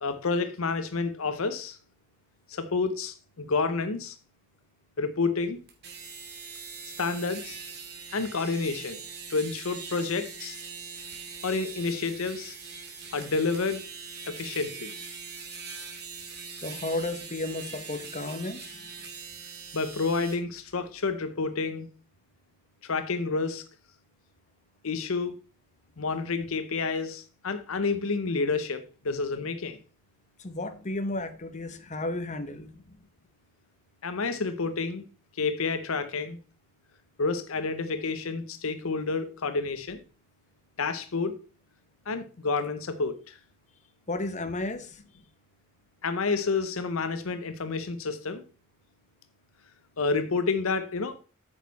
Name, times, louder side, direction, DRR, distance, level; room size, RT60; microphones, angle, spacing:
voice 1, 0.0-1.8 2.5-4.2 5.0-5.6 7.0-7.6 8.1-9.0 9.3-10.6 11.4-12.6 13.1-13.8 14.3-14.9 19.7-21.9 22.8-23.6 24.8-25.4 26.0-29.8 34.0-35.0 35.4-36.4 37.2-40.0 40.8-41.4 42.1-43.4 46.0-48.4 50.0-51.1, left 4 dB, 70° left, 0.8 m, -29 dB
sound 1, 5.7-20.4, right 5 dB, 50° right, 2.5 m, -42 dB
voice 2, 16.6-18.6 30.4-32.7 44.1-45.0, left 2 dB, 35° left, 1.1 m, -33 dB
8.7 x 6.5 x 4.1 m
head